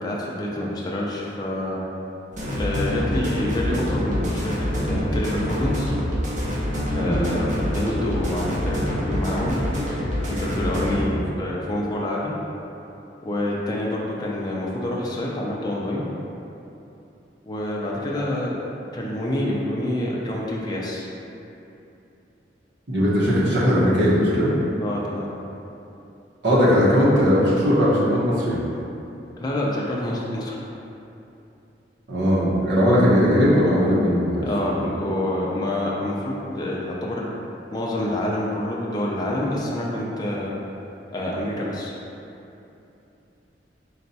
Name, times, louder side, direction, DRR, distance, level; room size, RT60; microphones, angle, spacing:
voice 1, 0.0-1.8 2.5-5.9 6.9-9.6 10.3-12.3 13.3-16.0 17.4-18.6 18.9-21.1 24.8-25.3 29.4-30.6 34.3-37.3 37.7-40.5 41.1-41.9, left 1 dB, 20° left, -4 dB, 0.4 m, -27 dB
sound 1, 2.3-11.0, equal, 40° right, 0.6 m, -26 dB
voice 2, 22.9-24.5 26.4-28.6 32.1-34.5, equal, 75° right, -7 dB, 0.8 m, -19 dB
4.0 x 2.2 x 4.0 m, 2.8 s
head